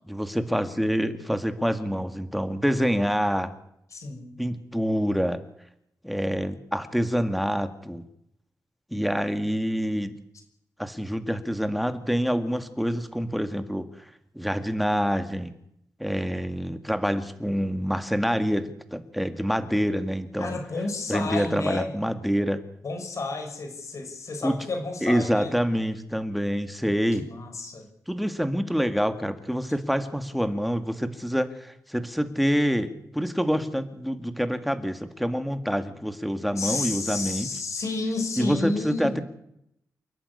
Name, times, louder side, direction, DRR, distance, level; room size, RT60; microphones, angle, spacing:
voice 1, 0.1-3.5 4.4-5.4 6.0-8.0 8.9-10.1 10.8-13.9 14.4-15.5 16.0-20.6 21.1-22.6 24.4-24.6 25.0-27.3 28.1-37.5 38.4-39.2, equal, ahead, 9 dB, 1.9 m, -26 dB
voice 2, 3.9-4.5 20.4-21.9 22.8-25.5 27.2-27.9 36.6-39.1, left 3 dB, 55° left, 5 dB, 5.9 m, -31 dB
28.5 x 11.5 x 9.8 m, 0.77 s
wide cardioid pair, 120°, 6 cm